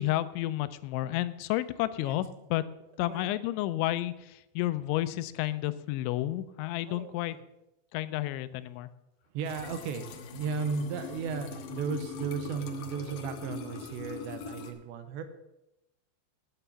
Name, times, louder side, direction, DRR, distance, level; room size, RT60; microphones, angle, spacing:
voice 1, 0.0-2.6 3.0-7.4 7.9-8.9, left 15 dB, 90° left, 14 dB, 3.0 m, -31 dB
voice 2, 9.3-15.2, right 6 dB, 80° right, 9 dB, 3.1 m, -35 dB
sound 1, 9.4-14.7, left 6 dB, 70° left, 2.3 m, -41 dB
9.8 x 9.0 x 6.8 m, 0.91 s
omnidirectional pair, 5.2 m